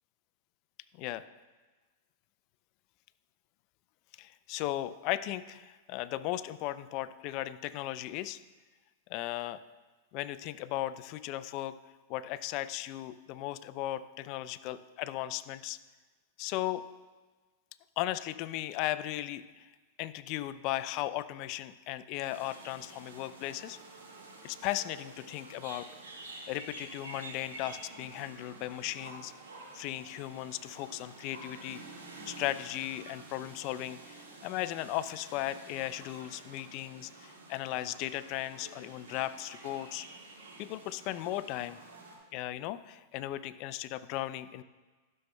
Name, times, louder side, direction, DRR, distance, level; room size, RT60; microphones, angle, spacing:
voice 1, 4.2-8.4 9.1-9.6 10.1-11.8 12.1-15.8 16.4-16.8 18.0-19.7 20.0-23.8 24.4-25.9 26.5-29.3 29.7-31.8 32.3-40.1 40.6-41.8 42.3-44.6, left 14 dB, 50° left, 14 dB, 0.4 m, -36 dB
sound 1, 22.2-42.2, right 3 dB, 85° right, 1.8 m, -50 dB
12.5 x 6.3 x 2.3 m, 1.3 s
hypercardioid pair, 115°, 0 cm